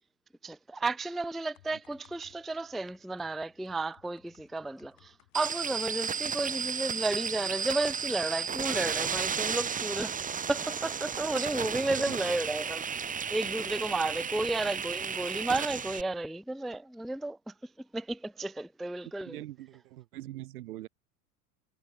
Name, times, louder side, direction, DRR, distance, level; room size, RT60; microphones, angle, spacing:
voice 1, 0.4-10.2 10.5-12.8 13.3-17.5 17.9-19.4, right 2 dB, ahead, 0.4 m, -33 dB
sound 1, 1.4-15.3, left 20 dB, 70° left, 6.0 m, -63 dB
sound 2, 5.3-16.0, right 6 dB, 20° right, 0.9 m, -33 dB
voice 2, 19.2-20.9, right 15 dB, 80° right, 3.4 m, -43 dB
hypercardioid pair, 90°, 44 cm